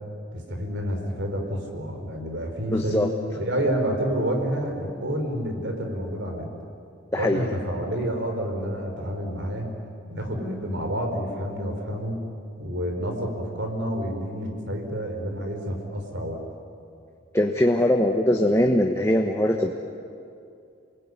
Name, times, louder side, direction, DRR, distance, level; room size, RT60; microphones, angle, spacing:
voice 1, 0.3-3.1 3.3-6.5 7.1-9.7 10.1-12.2 12.6-16.4, equal, 70° right, 3 dB, 4.6 m, -29 dB
voice 2, 2.7-3.1 7.1-7.5 17.3-19.7, left 1 dB, 15° left, 2 dB, 1.2 m, -21 dB
28.5 x 20.5 x 9.7 m, 2.5 s
head